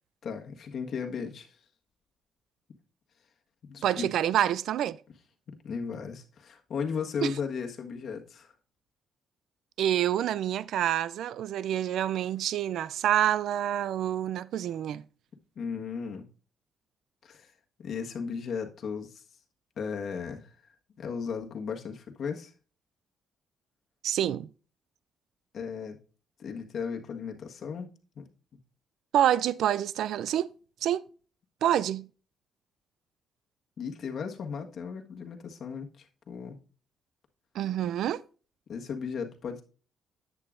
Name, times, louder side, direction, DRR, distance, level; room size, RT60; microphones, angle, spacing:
voice 1, 0.2-1.6 3.6-4.1 5.5-8.5 15.5-16.3 17.2-17.5 17.8-19.2 19.8-20.5 21.0-22.5 25.5-26.0 26.4-27.9 28.1-28.2 33.8-36.6 38.7-39.6, left 6 dB, 60° left, 1.4 m, -36 dB
voice 2, 3.8-5.0 7.2-7.3 9.8-15.0 24.0-24.5 29.1-30.5 30.8-31.0 31.6-32.1 37.6-38.2, right 11 dB, 75° right, 0.3 m, -27 dB
10.5 x 8.4 x 2.5 m
cardioid pair, 90°, 0 cm